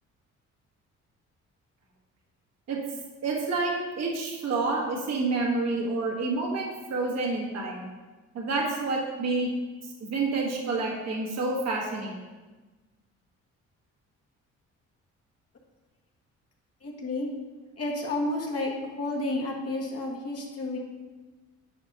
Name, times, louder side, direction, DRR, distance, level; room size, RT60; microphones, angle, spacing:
voice 1, 3.2-7.9 8.3-9.5 10.0-12.2, right 3 dB, 60° right, -1 dB, 1.3 m, -28 dB
voice 2, 16.8-17.3 17.8-18.7 19.0-20.8, left 2 dB, 50° left, -2 dB, 1.6 m, -31 dB
9.8 x 5.2 x 2.8 m, 1.2 s
cardioid pair, 90°, 30 cm